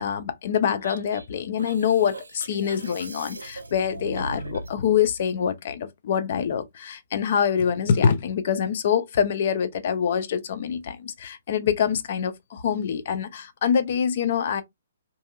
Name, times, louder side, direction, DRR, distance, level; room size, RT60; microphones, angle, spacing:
voice 1, 0.0-14.6, left 7 dB, 45° left, 0.5 m, -25 dB
sound 1, 0.8-4.8, right 2 dB, 75° right, 0.5 m, -39 dB
2.7 x 2.5 x 2.2 m
figure-of-eight pair, 125°, 0 cm